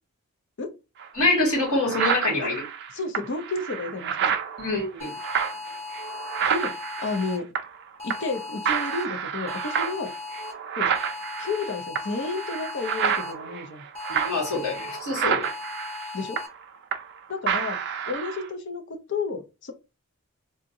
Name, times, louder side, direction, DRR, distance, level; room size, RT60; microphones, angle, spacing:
sound 1, 1.0-1.1 1.5-7.8 8.1-8.4 8.7-17.2 17.5-18.5, right 7 dB, 50° right, 0.4 m, -29 dB
voice 1, 1.1-2.6 4.6-5.1 14.1-15.5, left 2 dB, 80° left, 2.1 m, -25 dB
voice 2, 2.9-4.4 6.5-7.5 8.0-10.1 10.8-10.9 11.4-13.8 16.1-16.4 17.3-17.8 18.1-19.7, left 3 dB, 55° left, 0.6 m, -31 dB
sound 2, 5.0-7.4 8.0-9.0 9.5-10.5 10.9-13.3 13.9-15.0 15.4-16.5, left 4 dB, 25° left, 1.1 m, -37 dB
3.6 x 2.6 x 2.7 m
head